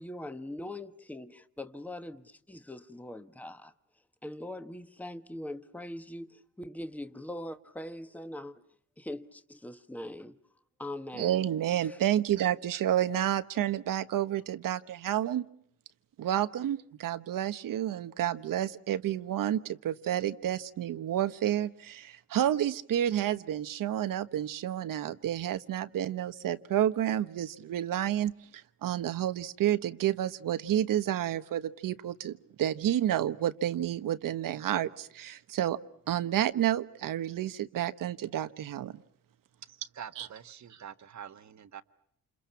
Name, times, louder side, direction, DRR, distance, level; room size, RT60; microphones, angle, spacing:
voice 1, 0.0-3.7 4.2-8.6 9.0-10.4 10.8-11.4 11.8-12.0, left 1 dB, 5° left, 1.3 m, -42 dB
voice 2, 11.2-15.5 16.2-35.8 36.1-39.0 40.2-40.3, right 11 dB, 80° right, 1.2 m, -30 dB
voice 3, 39.9-41.8, right 8 dB, 55° right, 1.4 m, -45 dB
28.5 x 28.5 x 5.8 m
cardioid pair, 105°, 33 cm